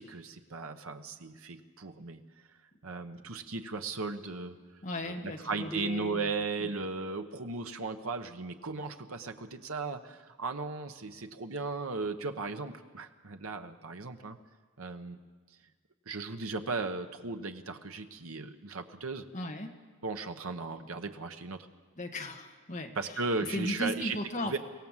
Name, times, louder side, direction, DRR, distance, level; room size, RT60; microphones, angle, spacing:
voice 1, 0.0-2.2 2.8-4.6 5.0-14.4 14.8-15.2 16.1-19.3 20.0-21.7 22.9-24.6, right 3 dB, 85° right, 7 dB, 1.2 m, -36 dB
voice 2, 4.8-6.3 6.6-6.7 19.3-19.7 22.0-23.2 23.5-24.6, left 1 dB, 35° left, 4 dB, 1.6 m, -36 dB
24.5 x 17.0 x 7.4 m, 1.4 s
head